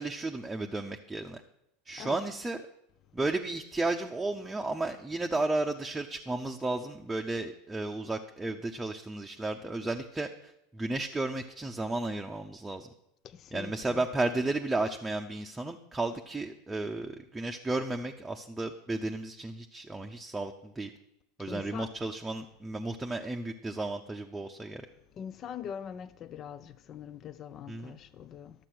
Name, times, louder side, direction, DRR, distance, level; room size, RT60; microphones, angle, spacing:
voice 1, 0.0-1.4 1.9-2.6 3.1-10.3 10.7-12.9 13.5-20.9 21.4-24.9 27.7-27.9, right 2 dB, 10° right, 0.7 m, -33 dB
voice 2, 21.5-21.9 25.2-28.5, left 8 dB, 40° left, 0.5 m, -42 dB
11.5 x 7.5 x 6.2 m
figure-of-eight pair, 80°, 0 cm